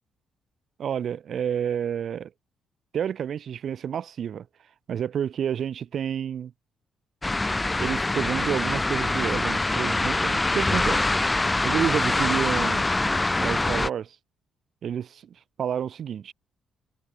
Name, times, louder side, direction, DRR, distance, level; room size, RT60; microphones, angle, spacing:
voice 1, 0.8-2.3 2.9-4.5 4.9-6.5 7.8-11.1 11.6-12.9 13.4-14.2 14.8-15.2 15.6-16.3, right 8 dB, 60° right, 2.6 m, -29 dB
sound 1, 7.2-13.9, left 2 dB, 15° left, 2.0 m, -24 dB
cardioid pair, 90°, 0 cm